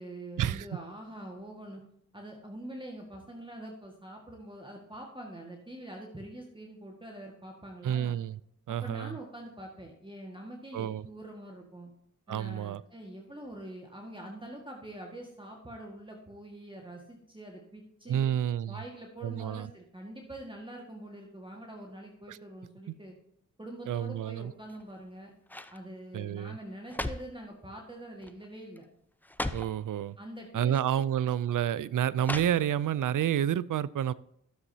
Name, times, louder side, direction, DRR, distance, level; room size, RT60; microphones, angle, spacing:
voice 1, 0.0-1.8 2.1-8.2 8.7-11.9 12.3-18.3 18.7-23.2 23.6-25.3 25.7-28.9 30.2-31.0, right 1 dB, 15° right, 0 dB, 1.7 m, -45 dB
voice 2, 7.8-8.4 8.7-9.1 10.7-11.0 12.3-12.8 18.1-18.8 19.2-19.7 22.3-22.4 23.9-24.5 26.1-26.6 29.5-30.2 30.5-34.1, right 10 dB, 65° right, 20 dB, 0.5 m, -29 dB
sound 1, 24.6-25.0 25.5-25.8 26.6-27.4 28.2-28.5 28.8-28.9 29.2-29.8 30.7-30.9 32.2-33.0 33.4-33.5, left 1 dB, 5° left, 0.6 m, -37 dB
13.0 x 7.2 x 2.8 m, 0.72 s
cardioid pair, 50°, 34 cm